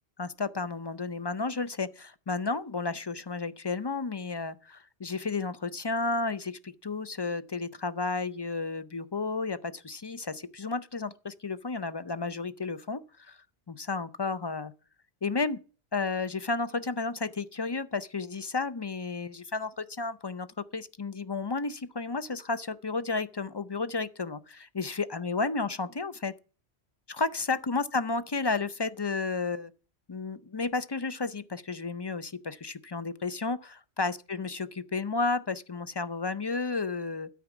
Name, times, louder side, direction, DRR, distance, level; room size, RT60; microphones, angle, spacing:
voice 1, 0.2-13.4 13.7-14.7 15.2-15.6 15.9-20.5 20.7-26.3 27.1-29.7 30.1-37.3, left 4 dB, 35° left, 0.4 m, -32 dB
13.0 x 4.8 x 8.1 m
omnidirectional pair, 1.1 m